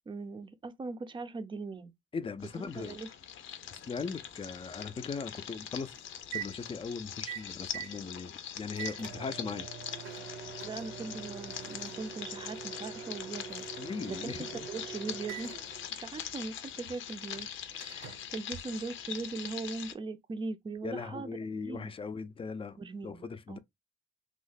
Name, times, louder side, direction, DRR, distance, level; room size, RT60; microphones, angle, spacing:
voice 1, 0.1-1.9 2.6-3.1 10.6-13.7 14.1-15.6 15.9-17.5 17.8-21.9 22.8-23.6, right 3 dB, 25° right, 0.5 m, -40 dB
voice 2, 2.1-3.0 3.7-5.9 6.3-9.7 13.8-14.7 20.8-22.8 23.0-23.6, left 5 dB, 25° left, 0.5 m, -39 dB
sound 1, 2.4-19.9, left 9 dB, 80° left, 0.6 m, -43 dB
Microwave oven, 3.6-19.3, right 7 dB, 85° right, 0.8 m, -45 dB
3.0 x 2.1 x 4.0 m
cardioid pair, 90°, 20 cm